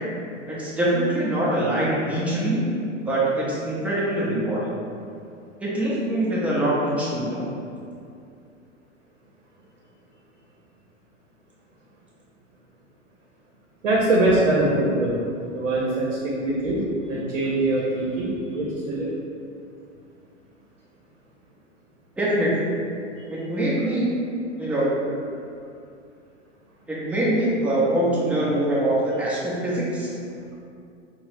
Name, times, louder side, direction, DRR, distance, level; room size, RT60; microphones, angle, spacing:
voice 1, 0.5-2.6 3.1-4.7 5.6-7.5 22.2-22.7 23.3-24.1 24.6-24.9 26.9-30.1, right 1 dB, 5° right, -8 dB, 0.5 m, -23 dB
voice 2, 13.8-15.2 15.5-19.1 23.2-23.3, right 2 dB, 80° right, -4 dB, 0.7 m, -23 dB
3.8 x 2.0 x 2.5 m, 2.5 s
hypercardioid pair, 110°, 37 cm